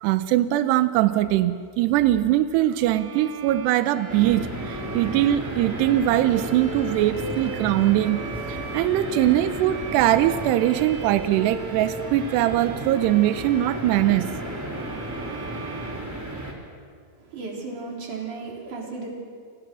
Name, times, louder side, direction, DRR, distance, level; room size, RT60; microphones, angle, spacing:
voice 1, 0.0-8.2 8.5-14.3 15.3-15.4, right 13 dB, 85° right, 11 dB, 2.4 m, -22 dB
Bowed string instrument, 2.8-16.9, right 7 dB, 70° right, 1.7 m, -40 dB
sound 1, 4.1-16.5, right 1 dB, 5° right, 2.6 m, -34 dB
voice 2, 17.2-19.1, right 4 dB, 40° right, -1 dB, 5.3 m, -35 dB
29.5 x 27.0 x 6.3 m, 2.1 s
omnidirectional pair, 5.9 m